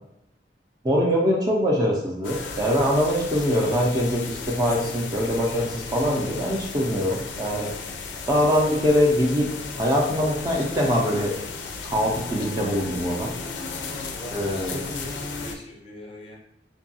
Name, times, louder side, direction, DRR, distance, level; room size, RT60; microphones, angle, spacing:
voice 1, 0.8-7.7 8.3-9.5 9.8-11.3 11.8-13.3 14.3-14.9, equal, 20° right, -2 dB, 0.4 m, -23 dB
sound 1, 2.2-15.6, left 4 dB, 85° left, 0.4 m, -35 dB
voice 2, 14.1-16.4, left 1 dB, 35° left, -1 dB, 0.5 m, -40 dB
2.6 x 2.3 x 2.6 m, 0.79 s
head